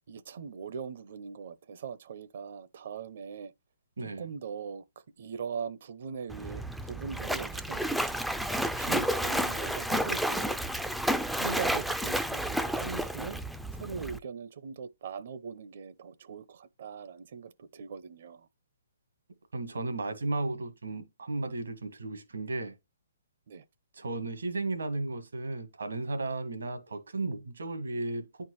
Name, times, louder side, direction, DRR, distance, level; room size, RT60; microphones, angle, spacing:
voice 1, 0.1-3.5 4.2-4.8 5.2-8.1 8.5-10.6 11.3-13.4 13.8-18.5 23.5-23.6, right 6 dB, 55° right, 0.6 m, -40 dB
voice 2, 4.0-4.3 19.5-22.7 23.9-28.4, right 2 dB, 90° right, 1.6 m, -34 dB
Splash splatter, 6.3-14.2, equal, ahead, 0.4 m, -31 dB
9.4 x 4.5 x 3.1 m
hypercardioid pair, 150°, 0 cm